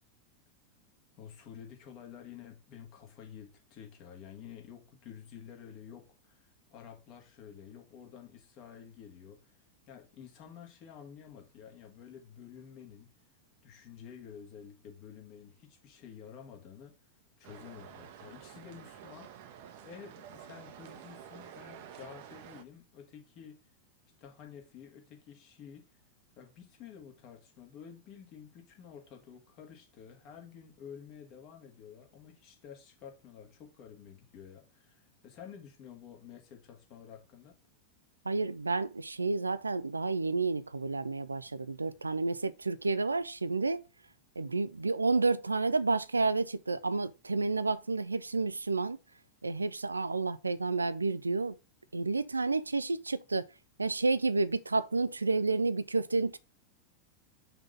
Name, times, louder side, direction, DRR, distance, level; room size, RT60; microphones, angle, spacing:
voice 1, 1.2-9.5 9.9-13.1 13.6-16.9 17.4-19.3 19.8-23.6 24.2-25.9 26.4-37.6, left 8 dB, 40° left, 2.0 m, -50 dB
sound 1, 17.4-22.6, right 9 dB, 50° right, 0.9 m, -50 dB
voice 2, 38.3-43.8 44.4-49.0 49.4-51.6 51.9-53.4 53.8-56.4, right 3 dB, 80° right, 0.4 m, -30 dB
5.7 x 3.8 x 5.7 m
figure-of-eight pair, 90°, 0 cm